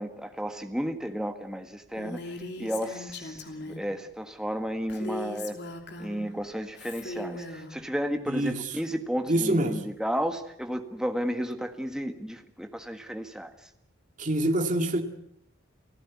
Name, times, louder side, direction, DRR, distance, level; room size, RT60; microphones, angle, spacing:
voice 1, 0.0-5.6 6.0-13.7, equal, 5° right, 6 dB, 1.7 m, -33 dB
Female speech woman speaking, 2.0-3.9 4.9-6.3 6.8-7.7, left 1 dB, 55° left, 3.0 m, -39 dB
voice 2, 8.3-8.6 9.3-9.8 14.2-15.0, right 1 dB, 40° right, 5 dB, 2.2 m, -25 dB
29.0 x 15.5 x 8.4 m, 0.74 s
head